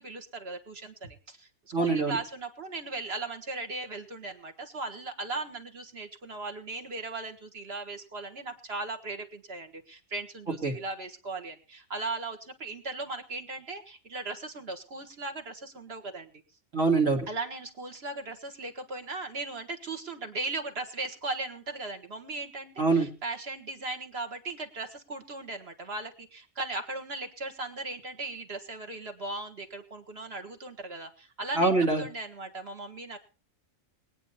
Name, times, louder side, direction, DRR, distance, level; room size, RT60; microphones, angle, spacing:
voice 1, 0.0-1.5 1.8-16.3 17.3-31.7 32.0-33.2, right 3 dB, 50° right, 5 dB, 2.0 m, -38 dB
voice 2, 1.7-2.2 10.6-10.7 16.7-17.2 22.8-23.1 31.6-32.0, right 3 dB, 65° right, 0 dB, 2.6 m, -24 dB
22.0 x 9.1 x 4.2 m, 0.36 s
omnidirectional pair, 1.4 m